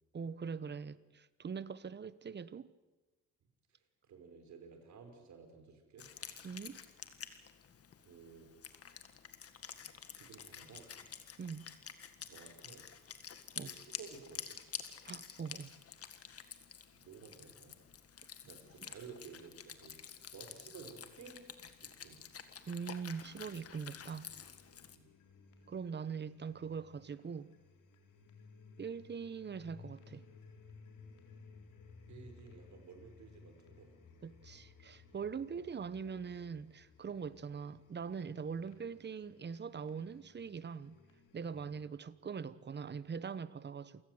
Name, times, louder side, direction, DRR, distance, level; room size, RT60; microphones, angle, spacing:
voice 1, 0.1-2.7 6.4-6.8 11.4-11.6 13.5-13.7 15.1-15.7 22.7-24.3 25.7-27.5 28.8-30.2 34.2-40.9 41.3-44.0, right 6 dB, 35° right, 1.1 m, -42 dB
voice 2, 3.7-6.1 8.0-8.5 9.7-10.9 12.3-12.9 13.5-14.6 16.9-17.8 18.5-21.5 21.8-22.2 24.9-25.1 28.2-28.3 32.1-34.0 37.0-37.1 41.5-41.7, right 5 dB, 70° right, 5.1 m, -54 dB
Wind instrument woodwind instrument, 6.0-25.0, left 7 dB, 50° left, 1.9 m, -50 dB
sound 1, 23.2-41.8, left 4 dB, 85° left, 3.9 m, -59 dB
28.0 x 16.5 x 8.0 m
cardioid pair, 90°, 30 cm